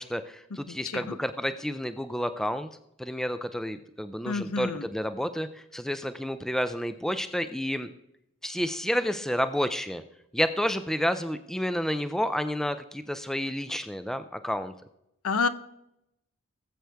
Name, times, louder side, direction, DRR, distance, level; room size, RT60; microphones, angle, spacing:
voice 1, 0.0-2.7 3.0-7.9 8.4-10.0 10.3-14.7, equal, ahead, 11 dB, 0.4 m, -30 dB
voice 2, 0.7-1.2 4.3-4.9 15.2-15.5, left 4 dB, 80° left, 13 dB, 0.7 m, -29 dB
18.5 x 7.8 x 3.4 m, 0.83 s
head